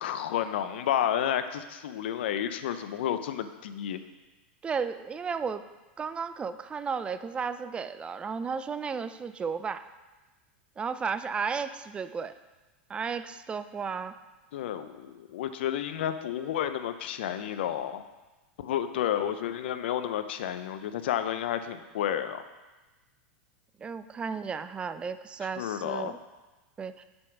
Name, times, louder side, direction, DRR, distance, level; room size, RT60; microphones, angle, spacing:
voice 1, 0.0-4.0 14.5-18.0 18.6-22.4 25.6-26.1, left 10 dB, 75° left, 10 dB, 0.5 m, -31 dB
voice 2, 4.6-5.7 6.0-9.9 10.8-12.3 12.9-14.1 23.8-26.2 26.8-27.0, right 5 dB, 20° right, 12 dB, 0.4 m, -34 dB
6.9 x 5.3 x 5.8 m, 1.2 s
hypercardioid pair, 110°, 6 cm